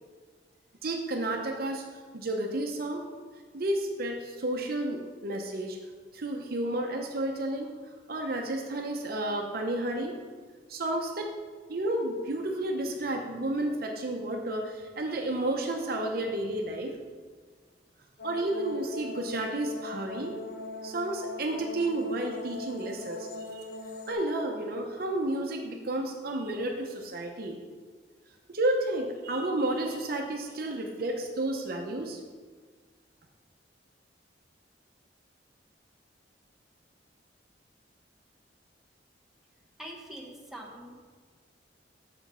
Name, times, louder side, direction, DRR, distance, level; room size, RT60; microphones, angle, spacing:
voice 1, 0.8-1.9 2.1-3.0 3.5-5.8 6.1-7.7 8.1-10.2 10.7-11.3 11.7-17.0 18.2-20.4 20.8-23.7 24.1-27.6 28.5-32.2, right 1 dB, 55° right, 3 dB, 0.7 m, -31 dB
sound 1, 18.2-24.1, left 2 dB, 60° left, 0.8 m, -41 dB
voice 2, 39.8-40.9, right 1 dB, ahead, -2 dB, 0.9 m, -43 dB
6.9 x 5.1 x 5.6 m, 1.5 s
head